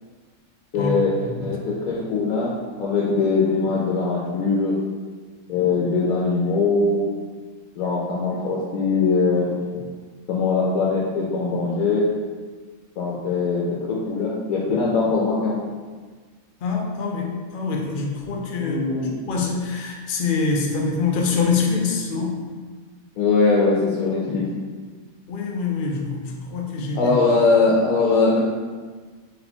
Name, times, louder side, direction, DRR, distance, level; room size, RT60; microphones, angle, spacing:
voice 1, 0.7-1.1 1.4-4.8 5.5-7.0 7.8-9.5 10.3-12.1 13.0-15.6 18.6-19.1 23.2-24.5 26.9-28.4, left 4 dB, 85° left, -4 dB, 1.1 m, -21 dB
voice 2, 16.6-18.8 19.3-22.4 25.3-27.1, left 4 dB, 65° left, 1 dB, 0.5 m, -25 dB
4.0 x 3.2 x 2.8 m, 1.5 s
omnidirectional pair, 1.5 m